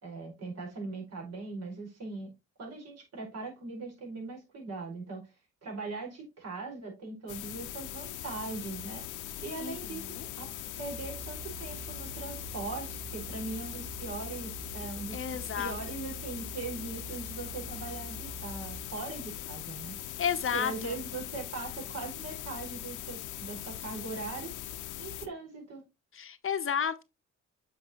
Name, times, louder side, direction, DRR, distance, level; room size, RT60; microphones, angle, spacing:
voice 1, 0.0-2.3 2.6-5.3 5.6-9.1 9.4-10.5 10.8-15.2 15.6-20.0 20.5-24.5 25.0-25.8, right 3 dB, 55° right, 4.9 m, -40 dB
sound 1, 7.3-25.3, left 12 dB, 85° left, 0.8 m, -41 dB
voice 2, 9.6-10.3 15.1-15.8 20.2-21.0 26.1-27.0, left 8 dB, 45° left, 0.9 m, -32 dB
sound 2, 10.9-18.9, right 9 dB, 40° right, 0.4 m, -46 dB
8.2 x 5.3 x 3.0 m
cardioid pair, 90°, 30 cm